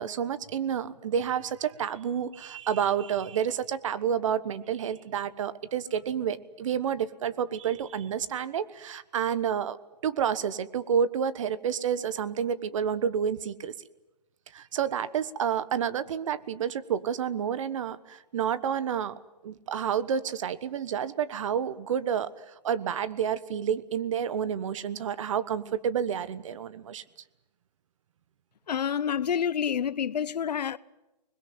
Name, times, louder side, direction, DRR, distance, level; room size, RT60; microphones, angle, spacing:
voice 1, 0.0-9.8 10.0-13.7 14.5-27.0, right 8 dB, 50° right, 1.3 m, -29 dB
voice 2, 28.7-30.8, left 8 dB, 75° left, 0.9 m, -28 dB
28.5 x 21.0 x 7.9 m
hypercardioid pair, 160°, 21 cm